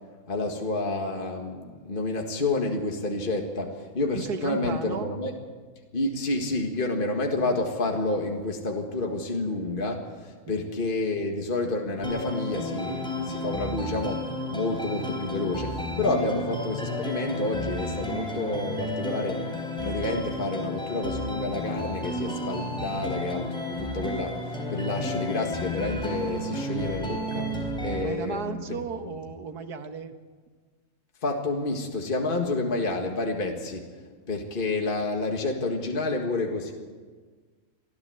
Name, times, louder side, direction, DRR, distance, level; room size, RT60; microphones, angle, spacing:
voice 1, 0.3-5.3 5.9-19.5 19.8-28.8 31.2-33.9 34.3-36.7, left 2 dB, 35° left, 2 dB, 1.9 m, -29 dB
voice 2, 4.2-5.1 10.5-10.6 16.2-16.4 28.0-30.1, right 6 dB, 85° right, 8 dB, 1.8 m, -34 dB
sound 1, 12.0-28.0, left 1 dB, 5° left, 3.9 m, -32 dB
24.5 x 14.0 x 7.8 m, 1.5 s
omnidirectional pair, 1.6 m